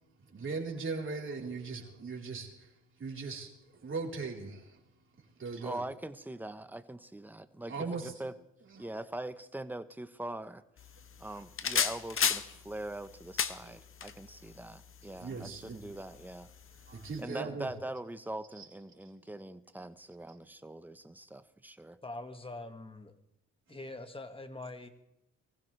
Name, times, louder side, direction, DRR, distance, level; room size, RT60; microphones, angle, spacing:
voice 1, 0.3-2.7 3.0-4.8 5.4-5.8 7.7-8.1 8.8-8.9 15.1-15.8 16.9-17.7 18.6-18.7 23.7-23.8, right 4 dB, 40° right, 4.2 m, -39 dB
voice 2, 5.6-8.3 8.8-10.6 11.2-16.5 16.9-22.0, right 1 dB, 5° right, 1.1 m, -42 dB
sound 1, 10.8-17.2, left 7 dB, 45° left, 1.1 m, -36 dB
voice 3, 22.0-23.2 23.7-24.9, left 2 dB, 20° left, 1.9 m, -43 dB
24.0 x 15.5 x 3.4 m
cardioid pair, 90°, 30 cm